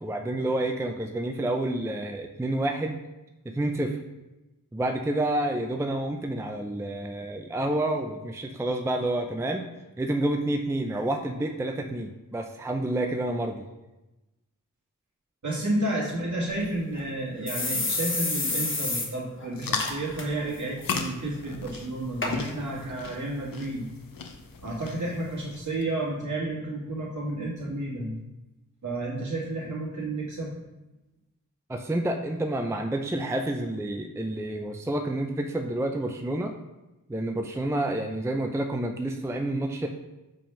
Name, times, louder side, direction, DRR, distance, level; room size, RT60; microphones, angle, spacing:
voice 1, 0.0-3.0 3.4-4.0 4.7-9.7 10.0-13.6 31.7-36.5 37.1-39.9, right 1 dB, 10° right, 4 dB, 0.4 m, -29 dB
voice 2, 15.4-23.8 24.6-28.1 28.8-30.6, right 1 dB, 60° right, -5 dB, 2.1 m, -31 dB
sound 1, 16.5-16.6 16.9-17.0 17.5-19.1 19.4-19.5 19.8-20.2 20.6-20.9 21.6-21.7 22.2-22.3 23.0-23.1, left 2 dB, 35° left, 1.1 m, -29 dB
sound 2, 19.5-25.9, left 5 dB, 90° left, 0.7 m, -37 dB
5.2 x 3.5 x 5.6 m, 1.0 s
wide cardioid pair, 60°, 33 cm